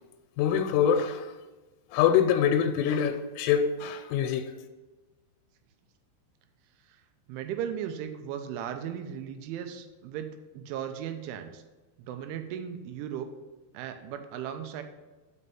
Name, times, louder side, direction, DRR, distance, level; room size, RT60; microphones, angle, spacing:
voice 1, 0.4-1.3 1.9-4.5, left 8 dB, 90° left, 3.1 m, -24 dB
voice 2, 7.3-11.6 12.0-13.3 13.7-14.8, right 9 dB, 85° right, 3.1 m, -36 dB
6.2 x 5.5 x 6.9 m
omnidirectional pair, 5.5 m